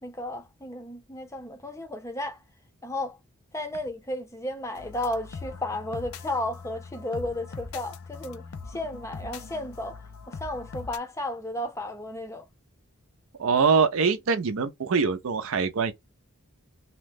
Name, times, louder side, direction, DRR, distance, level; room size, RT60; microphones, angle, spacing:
voice 1, 0.0-2.4 2.8-3.2 3.5-10.0 10.3-12.5, left 1 dB, 15° left, 0.6 m, -33 dB
sound 1, 4.7-11.0, left 4 dB, 85° left, 0.5 m, -41 dB
voice 2, 13.4-15.9, right 5 dB, 70° right, 0.5 m, -23 dB
2.8 x 2.1 x 3.3 m
head